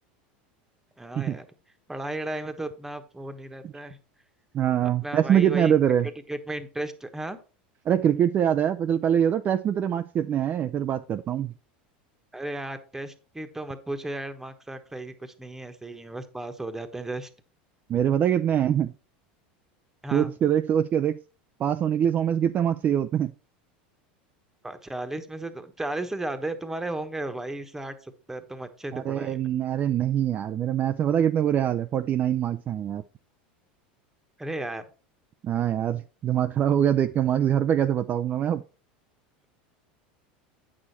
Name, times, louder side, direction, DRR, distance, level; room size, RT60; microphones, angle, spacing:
voice 1, 1.0-1.5 1.9-4.0 5.0-5.7 6.3-7.4 12.3-17.3 20.0-20.3 24.6-29.4 34.4-34.8, right 1 dB, 10° right, 9 dB, 1.2 m, -34 dB
voice 2, 4.5-6.1 7.9-11.5 17.9-18.9 20.1-21.2 21.6-23.3 28.9-33.0 35.4-38.6, right 9 dB, 35° right, 8 dB, 0.5 m, -24 dB
8.6 x 6.4 x 4.2 m, 0.36 s
hypercardioid pair, 105°, 5 cm